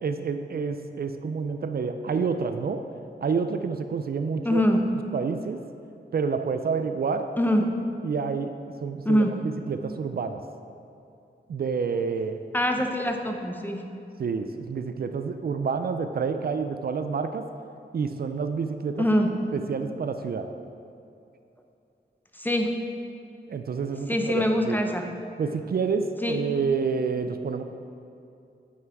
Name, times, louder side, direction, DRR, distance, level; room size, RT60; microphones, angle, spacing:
voice 1, 0.0-2.9 3.2-4.6 5.1-5.6 6.1-7.3 8.0-8.5 8.8-10.4 11.5-12.4 14.2-17.5 17.9-19.1 19.5-20.5 23.5-24.8 25.4-27.6, right 5 dB, 55° right, 8 dB, 0.4 m, -28 dB
voice 2, 4.4-4.9 7.4-7.7 9.0-9.3 12.5-13.8 19.0-19.3 22.4-22.8 24.1-25.1 26.2-26.4, equal, 10° left, 3 dB, 0.6 m, -23 dB
9.4 x 5.8 x 4.6 m, 2.6 s
wide cardioid pair, 155°, 19 cm